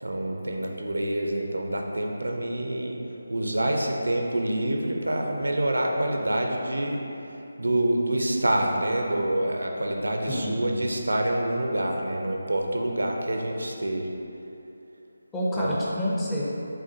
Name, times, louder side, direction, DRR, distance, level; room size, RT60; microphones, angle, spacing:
voice 1, 0.0-2.9 3.3-7.0 7.6-14.1 15.5-15.8, right 1 dB, 75° right, 1 dB, 0.5 m, -27 dB
voice 2, 10.3-10.8 15.3-16.5, left 1 dB, 10° left, -7 dB, 0.5 m, -28 dB
5.7 x 2.4 x 2.7 m, 2.9 s
figure-of-eight pair, 155°, 0 cm